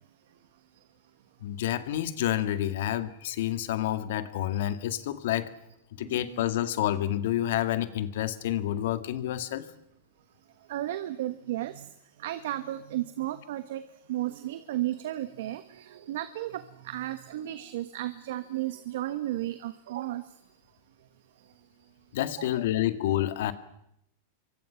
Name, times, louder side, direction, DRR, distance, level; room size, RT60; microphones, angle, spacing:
voice 1, 1.4-5.5 6.0-9.7 22.1-23.5, left 12 dB, 70° left, 11 dB, 1.9 m, -29 dB
voice 2, 6.0-6.5 10.7-11.9 12.2-13.8 14.1-20.2 22.4-22.5, right 14 dB, 70° right, 11 dB, 1.3 m, -34 dB
28.0 x 24.0 x 5.8 m, 0.79 s
hypercardioid pair, 130°, 0 cm